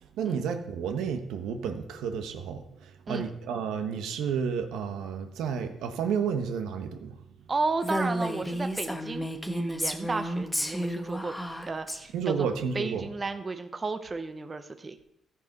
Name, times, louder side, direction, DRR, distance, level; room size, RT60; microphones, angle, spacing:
voice 1, 0.2-7.2 12.1-13.1, right 6 dB, 85° right, 6 dB, 1.0 m, -31 dB
voice 2, 7.5-11.3 11.7-12.5 12.7-15.0, right 3 dB, 30° right, 8 dB, 0.7 m, -33 dB
Female speech woman speaking, 7.8-12.0, equal, 5° left, 1.0 m, -32 dB
14.0 x 4.8 x 5.3 m, 0.85 s
cardioid pair, 90°, 0 cm